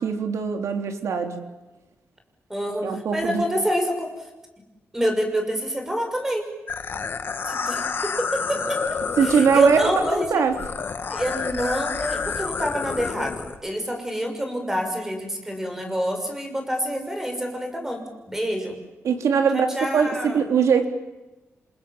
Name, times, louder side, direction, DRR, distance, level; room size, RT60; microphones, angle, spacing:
voice 1, 0.0-1.4 2.8-3.4 9.2-10.5 19.0-19.7 19.9-20.8, right 6 dB, 85° right, 5 dB, 3.9 m, -21 dB
voice 2, 2.5-4.1 4.9-6.5 7.5-8.8 9.2-10.4 11.1-18.7 19.5-20.4, equal, 10° right, 4 dB, 6.3 m, -27 dB
sound 1, 6.7-13.6, left 5 dB, 45° left, 2.3 m, -29 dB
28.5 x 27.5 x 7.5 m, 1.1 s
wide cardioid pair, 150°, 5 cm